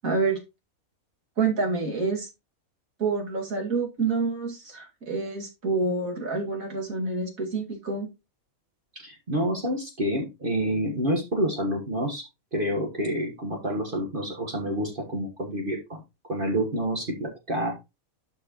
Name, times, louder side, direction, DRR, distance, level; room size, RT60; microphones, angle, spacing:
voice 1, 0.0-0.4 1.4-2.3 3.0-8.1, right 4 dB, 70° right, 0 dB, 2.6 m, -27 dB
voice 2, 8.9-12.2 12.5-16.0 16.3-17.7, equal, 40° right, 1 dB, 1.6 m, -28 dB
12.0 x 4.7 x 3.0 m, 0.25 s
omnidirectional pair, 1.5 m